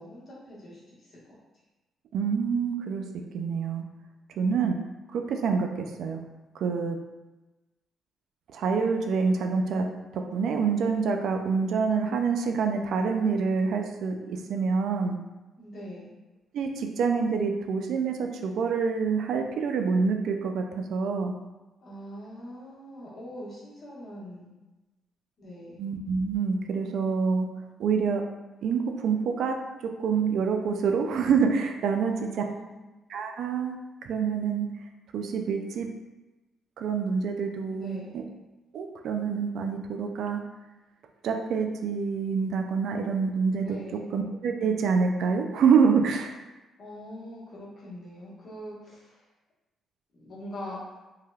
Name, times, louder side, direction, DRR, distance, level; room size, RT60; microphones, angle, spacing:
voice 1, 0.0-1.4 15.6-16.1 21.8-24.5 25.4-25.8 32.0-32.8 37.7-38.1 43.6-44.1 46.8-49.3 50.1-51.0, equal, 50° left, -6 dB, 1.2 m, -42 dB
voice 2, 2.1-3.0 3.3-3.8 4.4-4.8 5.1-6.2 6.5-7.0 8.5-9.8 10.1-15.2 16.5-21.3 25.8-27.5 27.8-28.2 28.6-29.6 30.0-32.4 33.1-33.8 34.0-34.7 35.1-35.9 36.8-38.2 38.7-40.4 41.2-43.8 44.1-46.3, right 5 dB, 75° right, 4 dB, 0.3 m, -26 dB
3.2 x 2.7 x 2.3 m, 1.1 s
cardioid pair, 90°, 0 cm